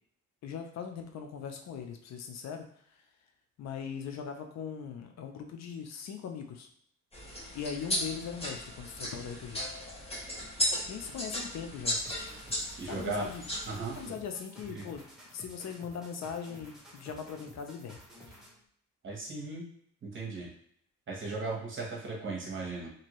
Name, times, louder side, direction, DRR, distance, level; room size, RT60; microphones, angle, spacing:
voice 1, 0.4-2.7 3.6-6.7 7.5-9.7 10.9-12.0 12.8-13.4 14.0-15.0 15.3-18.0, left 7 dB, 60° left, 5 dB, 0.5 m, -40 dB
sound 1, 7.1-14.0, equal, 20° left, 1.1 m, -36 dB
sound 2, 11.8-18.6, equal, ahead, 1.0 m, -53 dB
voice 2, 12.8-13.3 13.7-14.1 14.7-14.8 19.0-19.6 20.0-20.5 21.1-22.9, right 3 dB, 40° right, -2 dB, 1.1 m, -37 dB
2.7 x 2.6 x 3.0 m, 0.68 s
cardioid pair, 90°, 30 cm